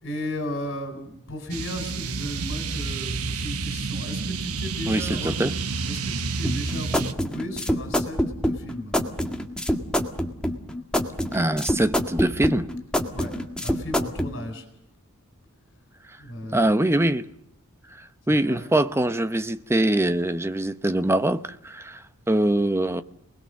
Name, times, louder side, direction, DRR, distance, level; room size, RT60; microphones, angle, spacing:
voice 1, 0.0-5.3 5.8-9.0 13.1-14.7 16.2-16.7 18.4-18.6, left 1 dB, 55° left, 4.3 m, -35 dB
sound 1, 1.5-7.1, right 4 dB, 75° right, 1.1 m, -29 dB
voice 2, 4.9-5.6 11.3-12.7 16.5-17.3 18.3-22.0 22.3-23.0, right 1 dB, 10° right, 0.8 m, -23 dB
sound 2, 6.4-14.3, equal, 5° left, 1.8 m, -26 dB
27.5 x 20.5 x 6.6 m
head